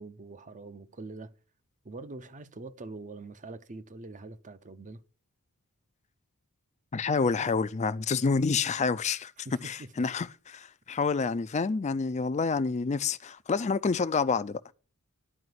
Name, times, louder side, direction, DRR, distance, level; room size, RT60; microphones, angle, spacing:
voice 1, 0.0-1.3 1.8-5.0 9.4-10.0, right 3 dB, 35° right, 0.7 m, -44 dB
voice 2, 6.9-9.3 9.6-14.6, left 4 dB, 30° left, 0.4 m, -28 dB
11.0 x 5.0 x 7.9 m
head